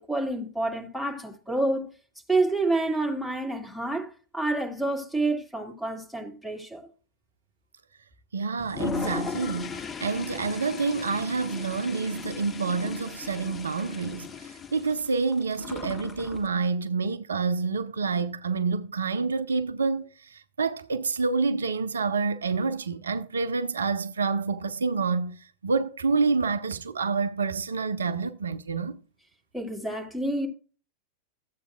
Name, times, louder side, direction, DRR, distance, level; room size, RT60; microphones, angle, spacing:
voice 1, 0.0-1.9 2.3-6.9 29.5-30.5, right 2 dB, ahead, 2.2 m, -28 dB
voice 2, 8.3-29.0, right 4 dB, 70° right, 0.5 m, -28 dB
Toilet flush, 8.6-16.5, left 6 dB, 20° left, 0.9 m, -37 dB
14.0 x 8.0 x 2.4 m
figure-of-eight pair, 90°, 0 cm